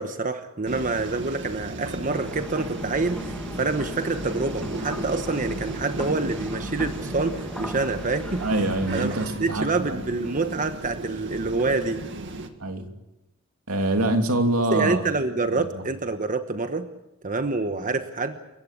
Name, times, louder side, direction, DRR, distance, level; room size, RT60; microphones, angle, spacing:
voice 1, 0.0-8.4 8.9-12.0 14.7-16.9 17.2-18.4, right 3 dB, 40° right, 8 dB, 1.2 m, -27 dB
sound 1, 0.7-12.5, right 2 dB, 60° right, 2.1 m, -35 dB
sound 2, 2.1-9.3, left 1 dB, 5° left, 1.8 m, -37 dB
voice 2, 8.4-10.0 12.6-12.9 13.7-15.0 15.5-15.7 17.7-17.8, right 1 dB, 85° right, 5 dB, 3.0 m, -25 dB
29.0 x 15.5 x 8.6 m, 0.95 s
head